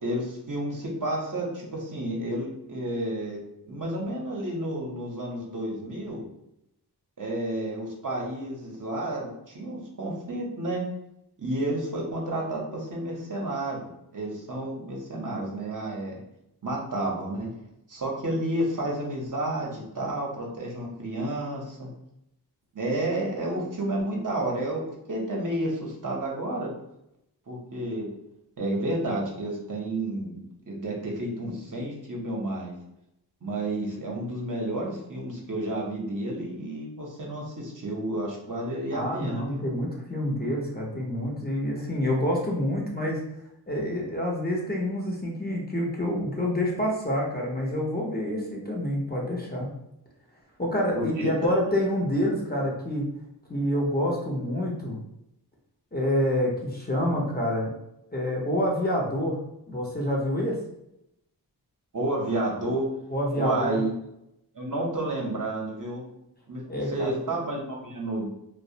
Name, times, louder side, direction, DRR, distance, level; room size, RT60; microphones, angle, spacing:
voice 1, 0.0-3.4 3.7-6.2 7.2-10.9 11.4-16.1 16.6-17.5 17.9-21.9 22.7-24.8 25.1-26.7 27.5-28.1 28.6-30.4 30.7-32.7 33.4-39.7 50.9-51.3 61.9-62.9 63.4-63.9 64.5-66.0 66.5-68.3, right 1 dB, 50° right, -2 dB, 0.7 m, -31 dB
voice 2, 38.9-43.2 43.7-49.7 50.6-53.0 53.5-55.0 55.9-57.7 58.1-59.4 59.7-60.6 63.1-63.8 66.7-67.1, equal, 25° left, -2 dB, 0.6 m, -27 dB
2.3 x 2.0 x 2.7 m, 0.82 s
wide cardioid pair, 60°, 41 cm